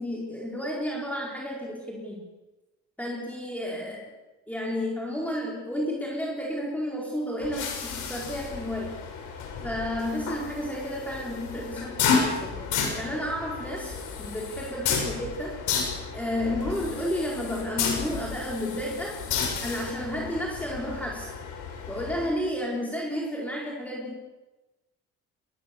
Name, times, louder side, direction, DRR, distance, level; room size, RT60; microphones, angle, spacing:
voice 1, 0.0-2.2 3.0-4.2 4.5-9.0 9.6-12.6 12.9-15.6 16.1-19.2 19.6-21.3 21.9-24.2, equal, 5° left, -2 dB, 4.6 m, -32 dB
sound 1, 7.4-22.3, left 5 dB, 90° left, 6.0 m, -32 dB
21.5 x 21.5 x 7.0 m, 1.1 s
cardioid pair, 90°, 30 cm